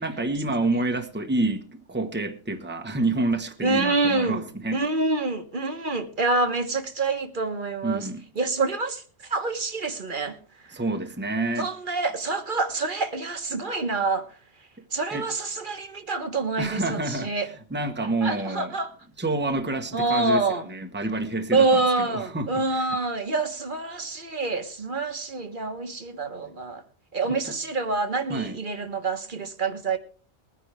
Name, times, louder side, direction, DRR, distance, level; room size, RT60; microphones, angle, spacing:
voice 1, 0.0-4.8 7.8-8.2 10.7-11.7 15.1-15.3 16.6-17.3 17.7-18.7 19.2-20.4 20.7-23.0 27.2-27.5 28.3-28.6, right 2 dB, 10° right, 1.1 m, -28 dB
voice 2, 3.6-4.4 4.7-8.1 8.3-10.8 11.6-14.4 14.9-17.5 18.0-18.9 19.9-20.7 21.5-26.8 27.1-30.0, right 3 dB, 50° right, 1.5 m, -27 dB
21.0 x 10.0 x 3.4 m
omnidirectional pair, 1.1 m